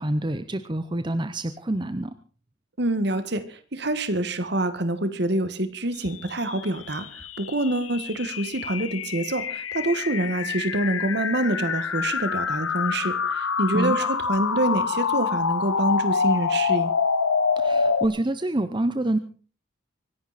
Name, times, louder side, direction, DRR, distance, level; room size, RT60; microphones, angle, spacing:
voice 1, 0.0-2.1 13.7-14.1 17.6-19.2, right 1 dB, 20° right, 11 dB, 0.7 m, -27 dB
voice 2, 2.8-16.9, right 1 dB, 55° right, 12 dB, 1.5 m, -26 dB
sound 1, 6.2-18.1, left 5 dB, 85° left, 1.2 m, -26 dB
25.0 x 11.0 x 4.1 m, 0.39 s
head